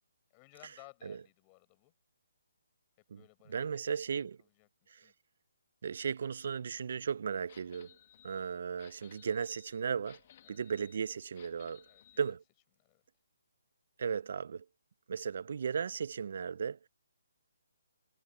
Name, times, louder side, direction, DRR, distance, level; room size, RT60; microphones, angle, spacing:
voice 1, 0.3-1.9 3.2-4.1 4.4-4.7 5.0-5.1 8.2-8.4 10.4-10.6 11.9-12.4 12.8-13.0, left 36 dB, 20° left, 5.6 m, -59 dB
voice 2, 3.5-4.4 4.9-5.0 5.8-7.9 8.2-10.2 10.5-11.8 12.2-12.4 14.0-14.7 15.1-16.8, right 6 dB, 55° right, 0.4 m, -36 dB
sound 1, 7.5-12.3, left 11 dB, 35° left, 1.0 m, -60 dB
hypercardioid pair, 160°, 0 cm